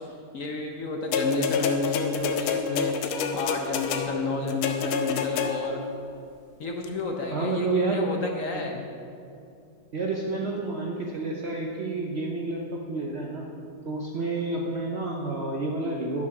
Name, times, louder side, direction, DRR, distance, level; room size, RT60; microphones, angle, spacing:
voice 1, 0.3-2.9 3.3-5.8 6.6-8.8, left 3 dB, 60° left, 2 dB, 0.8 m, -31 dB
sound 1, 1.1-5.9 6.8-6.9, left 6 dB, 85° left, 1.6 m, -28 dB
voice 2, 7.3-8.0 8.5-8.6 9.9-13.5 13.8-16.3, right 3 dB, 70° right, -1 dB, 0.6 m, -29 dB
12.0 x 6.1 x 5.9 m, 2.6 s
omnidirectional pair, 2.3 m